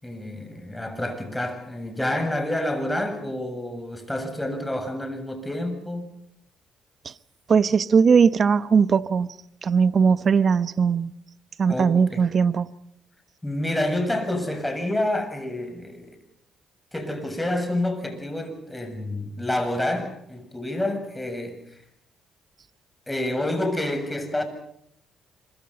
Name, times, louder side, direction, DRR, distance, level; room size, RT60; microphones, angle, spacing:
voice 1, 0.0-6.1 11.7-12.2 13.4-16.2 16.9-21.8 23.1-24.4, left 1 dB, 10° left, 7.1 m, -28 dB
voice 2, 7.5-9.3 9.6-11.1 11.6-12.7, right 6 dB, 50° right, 1.0 m, -19 dB
26.0 x 23.5 x 5.6 m
supercardioid pair, 60°, 0 cm